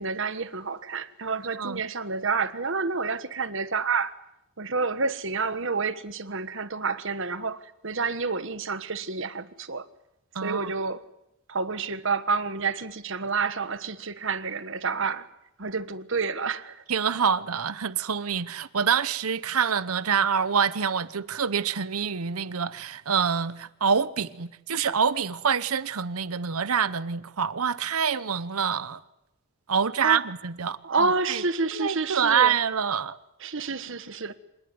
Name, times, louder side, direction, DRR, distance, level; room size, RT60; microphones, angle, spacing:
voice 1, 0.0-4.1 4.6-9.9 10.4-11.0 11.5-15.3 15.6-16.8 30.0-30.3 30.8-32.6 33.4-34.3, right 4 dB, 60° right, 1.4 m, -29 dB
voice 2, 10.3-10.7 16.9-29.0 29.7-31.4 31.7-33.2, right 6 dB, 80° right, 0.9 m, -26 dB
26.5 x 19.0 x 9.5 m
head